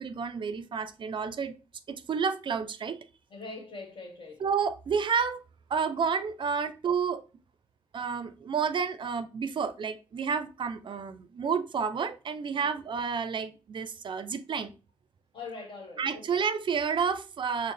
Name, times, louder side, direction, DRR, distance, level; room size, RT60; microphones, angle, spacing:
voice 1, 0.0-1.6 1.9-3.0 4.4-5.4 5.7-7.2 7.9-14.7 16.0-17.7, right 6 dB, 55° right, 0.4 m, -30 dB
voice 2, 3.3-4.4 12.5-12.8 15.3-16.3, left 3 dB, 55° left, 1.2 m, -43 dB
4.3 x 2.0 x 3.3 m
cardioid pair, 55°, 10 cm